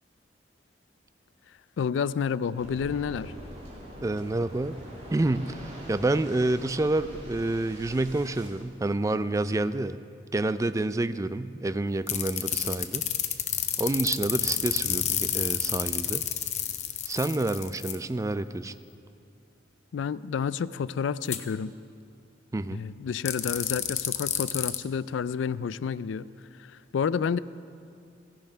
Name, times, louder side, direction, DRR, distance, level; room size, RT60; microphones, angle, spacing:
voice 1, 1.8-3.3 19.9-21.7 22.7-26.3 26.6-27.4, left 6 dB, 80° left, 18 dB, 0.3 m, -30 dB
Waves surf, 2.5-8.5, equal, 35° right, 2.8 m, -44 dB
voice 2, 4.0-4.8 5.1-10.0 10.3-13.1 13.8-16.3 17.1-18.7 22.5-22.8, right 2 dB, 15° right, 13 dB, 0.3 m, -28 dB
sound 1, 12.1-18.0 21.3-21.4 23.3-24.8, left 10 dB, 40° left, 0.7 m, -29 dB
16.0 x 10.5 x 5.6 m, 2.5 s
head